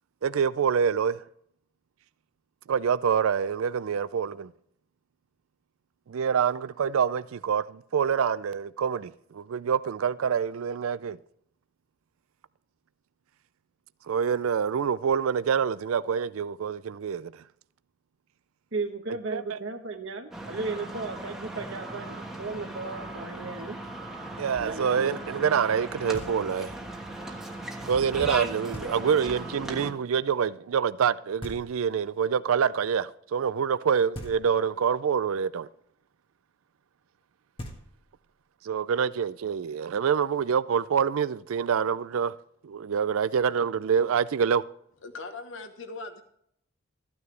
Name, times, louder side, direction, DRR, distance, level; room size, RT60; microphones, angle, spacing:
voice 1, 0.2-1.2 2.7-4.5 6.1-11.2 14.1-17.4 19.3-19.4 24.4-26.7 27.9-35.7 38.6-42.3 42.6-44.6, right 7 dB, 75° right, 0.4 m, -26 dB
voice 2, 18.7-23.8 24.6-25.3, right 3 dB, 60° right, 1.2 m, -35 dB
sound 1, 20.3-29.9, right 1 dB, ahead, 1.3 m, -38 dB
Knock, 26.1-26.8 28.7-29.4 31.4-32.2 34.1-34.9 37.2-37.3 37.6-38.4, equal, 25° left, 1.5 m, -43 dB
voice 3, 45.0-46.2, left 3 dB, 60° left, 1.1 m, -40 dB
14.0 x 9.6 x 3.3 m
head